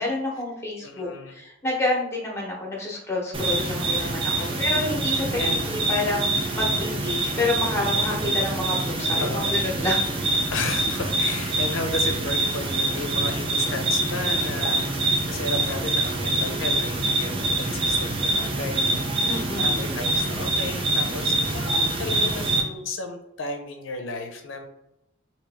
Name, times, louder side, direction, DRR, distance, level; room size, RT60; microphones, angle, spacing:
voice 1, 0.0-10.1 19.3-19.9, left 2 dB, 15° left, -2 dB, 0.9 m, -29 dB
voice 2, 0.8-1.4 4.3-4.9 5.4-5.6 9.2-9.6 10.5-24.7, left 3 dB, 70° left, 5 dB, 0.6 m, -34 dB
sound 1, 3.3-22.6, right 2 dB, 25° right, 0.5 m, -25 dB
3.0 x 2.7 x 3.4 m, 0.85 s
head